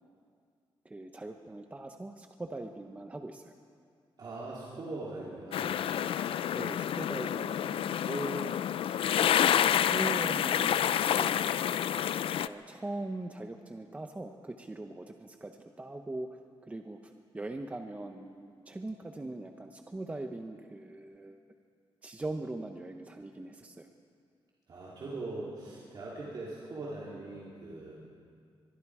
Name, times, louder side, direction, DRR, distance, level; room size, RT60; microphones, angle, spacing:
voice 1, 0.8-3.5 6.5-9.5 9.8-11.4 12.4-16.3 16.7-21.4 22.0-23.9, right 2 dB, 15° right, 5 dB, 0.8 m, -41 dB
voice 2, 4.2-5.8 24.7-28.0, right 2 dB, 50° right, -6 dB, 3.2 m, -41 dB
sound 1, 5.5-12.5, left 10 dB, 75° left, 0.5 m, -28 dB
24.0 x 22.5 x 4.9 m, 2.2 s
wide cardioid pair, 170°, 9 cm